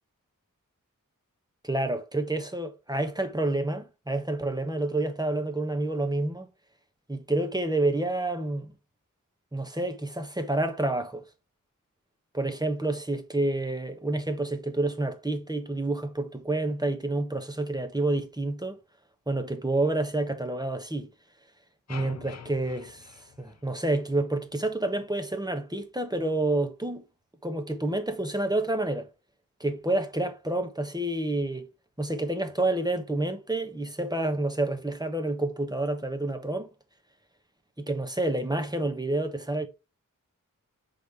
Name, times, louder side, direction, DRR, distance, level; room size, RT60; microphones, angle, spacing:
voice 1, 1.6-6.5 7.1-8.7 9.5-11.2 12.3-18.8 19.3-21.1 21.9-27.0 27.4-29.1 29.6-31.7 32.0-36.7 37.8-39.7, right 2 dB, 10° right, 1.1 m, -29 dB
sound 1, 21.9-24.2, left 6 dB, 50° left, 0.6 m, -45 dB
5.1 x 4.0 x 4.8 m
wide cardioid pair, 80°, 33 cm